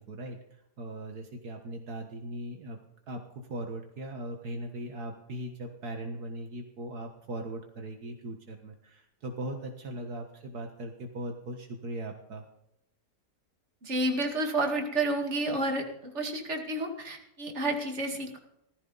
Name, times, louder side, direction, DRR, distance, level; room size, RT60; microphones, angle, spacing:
voice 1, 0.0-2.8 3.1-12.5, right 1 dB, 70° right, 3 dB, 2.0 m, -39 dB
voice 2, 13.8-18.4, right 2 dB, 45° right, 3 dB, 2.5 m, -30 dB
17.0 x 14.5 x 4.0 m, 0.80 s
omnidirectional pair, 1.7 m